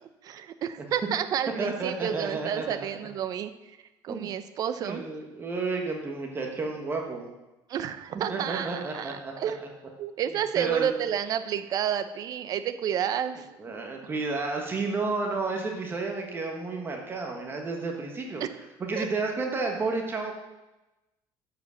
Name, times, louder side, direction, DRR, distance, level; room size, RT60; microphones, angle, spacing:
voice 1, 0.2-3.5 4.0-5.0 7.7-9.7 10.0-13.4 18.4-18.5 19.0-19.1, right 9 dB, 45° right, 11 dB, 0.7 m, -30 dB
voice 2, 1.6-3.1 4.1-4.3 4.8-7.3 8.3-9.3 10.5-10.9 13.6-18.4 18.8-20.3, right 3 dB, 25° right, 2 dB, 1.3 m, -31 dB
9.5 x 5.1 x 6.9 m, 1.0 s
cardioid pair, 140°, 9 cm